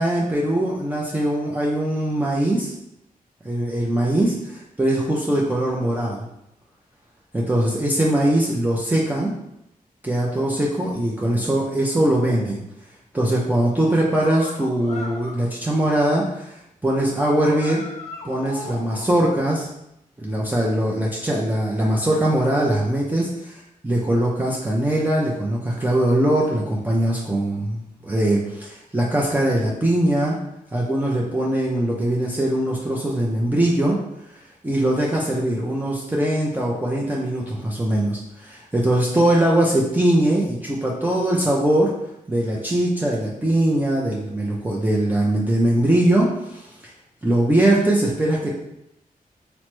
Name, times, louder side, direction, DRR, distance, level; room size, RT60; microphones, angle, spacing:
voice 1, 0.0-2.7 3.4-4.3 4.8-6.3 7.3-9.3 10.0-12.6 13.1-16.6 16.8-17.8 18.2-19.7 20.2-23.3 23.8-30.4 30.7-34.0 34.6-41.9 42.3-46.7 47.2-48.5, right 1 dB, 10° right, -4 dB, 0.4 m, -21 dB
sound 1, 14.2-15.5 17.4-19.2, left 2 dB, 45° left, 0.5 m, -37 dB
3.2 x 2.0 x 3.0 m, 0.83 s
cardioid pair, 70°, 15 cm